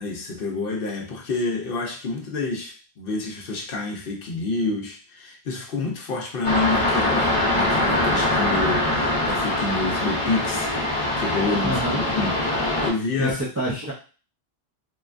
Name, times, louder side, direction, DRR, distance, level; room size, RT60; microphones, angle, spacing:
voice 1, 0.0-13.4, left 3 dB, 65° left, 2 dB, 0.8 m, -28 dB
sound 1, 6.4-12.9, left 1 dB, 35° left, 0.8 m, -23 dB
voice 2, 11.6-12.0 13.2-13.9, right 1 dB, 25° right, -4 dB, 0.3 m, -27 dB
3.1 x 2.2 x 2.4 m, 0.37 s
omnidirectional pair, 1.1 m